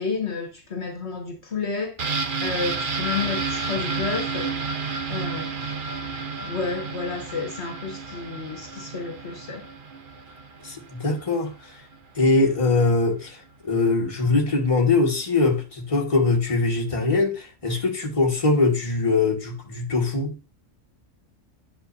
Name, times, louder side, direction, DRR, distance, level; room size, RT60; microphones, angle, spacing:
voice 1, 0.0-2.0 2.4-4.5 5.1-5.9 6.4-9.7, left 4 dB, 60° left, 1.5 m, -31 dB
sound 1, 2.0-11.6 11.9-12.0, right 4 dB, 45° right, 0.9 m, -31 dB
voice 2, 10.6-11.5 12.1-13.4 13.6-20.3, left 3 dB, 25° left, 1.6 m, -22 dB
10.5 x 6.0 x 2.7 m
omnidirectional pair, 1.3 m